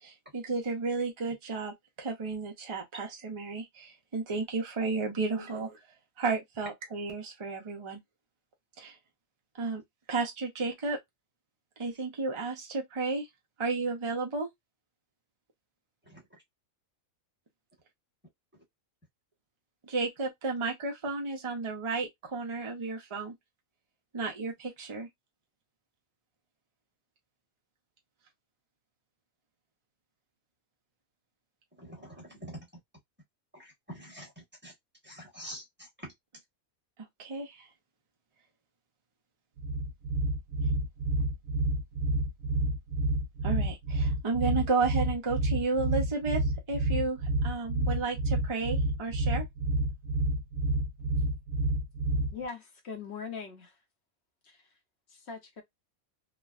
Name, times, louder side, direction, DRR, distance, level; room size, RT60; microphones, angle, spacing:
voice 1, 0.0-5.8 6.2-8.0 8.8-9.0 9.6-9.8 10.1-11.0 11.8-13.3 13.6-14.5 19.9-23.3 24.1-25.1 37.2-37.7 43.4-46.4 46.7-49.5, right 4 dB, 45° right, 0.3 m, -32 dB
voice 2, 31.8-32.6 33.5-34.3 34.6-34.7 35.0-35.6 36.0-36.1, equal, 10° right, 1.1 m, -44 dB
sound 1, 39.6-52.4, right 2 dB, 75° right, 1.0 m, -29 dB
voice 3, 52.3-53.7 54.4-54.6 55.1-55.6, left 5 dB, 55° left, 0.9 m, -41 dB
3.1 x 2.1 x 2.3 m
omnidirectional pair, 1.5 m